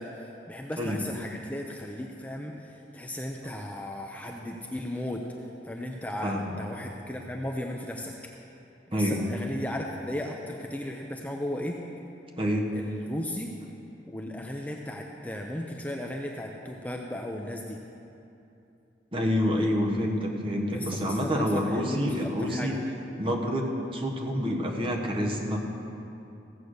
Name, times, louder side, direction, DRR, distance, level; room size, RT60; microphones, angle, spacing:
voice 1, 0.0-5.3 5.6-8.1 8.9-11.8 12.7-13.5 14.1-17.8 20.7-22.8 23.9-24.0, left 1 dB, 10° left, 1 dB, 0.6 m, -36 dB
voice 2, 8.9-9.2 12.4-12.7 19.1-22.8 23.2-25.6, equal, 30° right, 0 dB, 1.3 m, -27 dB
15.0 x 8.3 x 6.5 m, 2.8 s
head